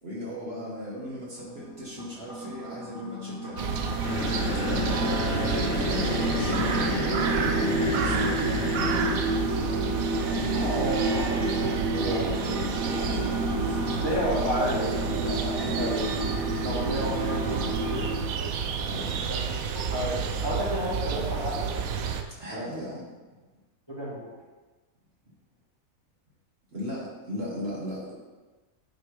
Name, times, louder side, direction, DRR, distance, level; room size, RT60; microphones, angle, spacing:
voice 1, 0.0-5.2 5.8-8.4 11.2-11.4 13.0-14.2 15.6-16.0 18.8-19.2 21.1-21.3 22.4-23.1 26.7-28.1, equal, 45° right, -6 dB, 1.8 m, -38 dB
sound 1, 1.4-18.2, right 1 dB, 5° right, 2.1 m, -30 dB
sound 2, 3.6-22.2, right 6 dB, 90° right, 1.1 m, -30 dB
sound 3, 4.0-9.2, left 3 dB, 65° left, 1.2 m, -31 dB
voice 2, 9.6-13.4 13.9-16.0 16.6-18.0 19.3-19.4 19.7-21.6 23.9-24.3, equal, 20° left, -8 dB, 1.9 m, -32 dB
9.3 x 3.4 x 4.8 m, 1.2 s
omnidirectional pair, 1.5 m